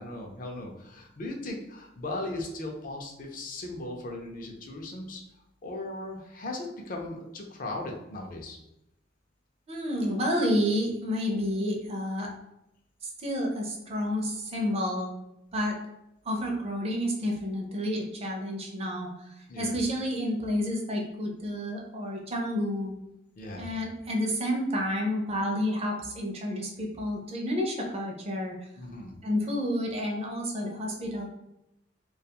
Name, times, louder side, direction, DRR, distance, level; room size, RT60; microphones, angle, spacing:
voice 1, 0.0-5.2 5.6-8.6 19.5-19.8 23.4-23.7 28.8-29.2, left 2 dB, 45° left, 1 dB, 0.4 m, -37 dB
voice 2, 9.7-12.3 13.0-15.1 15.5-15.7 16.3-22.9 23.6-28.5 29.2-31.3, equal, 30° right, 0 dB, 0.4 m, -30 dB
2.3 x 2.3 x 2.8 m, 0.86 s
head